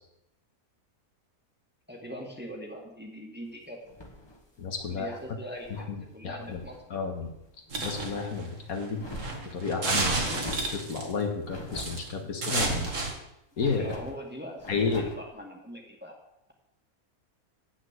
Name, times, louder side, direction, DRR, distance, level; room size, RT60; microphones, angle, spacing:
voice 1, 1.9-3.8 4.9-7.0 13.8-16.1, equal, 5° right, 0 dB, 1.6 m, -42 dB
sound 1, 3.9-5.9 6.3-6.8 7.2-8.5 8.9-9.6 10.2-10.9 11.5-12.0 12.5-13.1 13.6-14.2 14.6-15.2, left 1 dB, 20° left, 1.2 m, -44 dB
voice 2, 4.6-5.2 5.8-6.6 6.9-7.3 7.8-9.1 9.5-10.2 10.7-12.9 13.6-13.9 14.7-15.1, left 5 dB, 75° left, 3 dB, 1.8 m, -31 dB
sound 2, 7.7-11.2 11.8-12.1 12.4-13.1, right 3 dB, 55° right, 2.0 m, -31 dB
8.2 x 6.1 x 8.0 m, 0.84 s
omnidirectional pair, 1.6 m